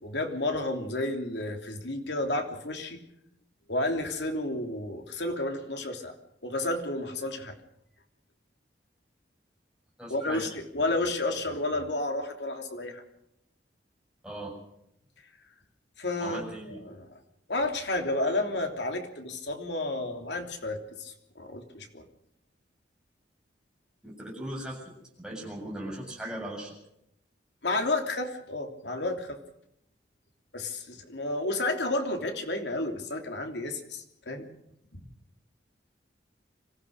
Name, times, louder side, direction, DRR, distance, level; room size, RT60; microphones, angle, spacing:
voice 1, 0.0-3.0 3.7-6.1 6.4-7.6 10.1-13.0 16.0-16.4 16.7-17.1 17.5-22.0 27.6-29.4 30.5-34.5 34.9-35.1, left 2 dB, 70° left, 4 dB, 3.2 m, -31 dB
voice 2, 10.0-10.5 14.2-14.5 16.2-16.8 24.0-24.8 25.2-26.8, right 1 dB, 5° right, -2 dB, 7.7 m, -38 dB
26.0 x 15.5 x 6.6 m, 0.77 s
head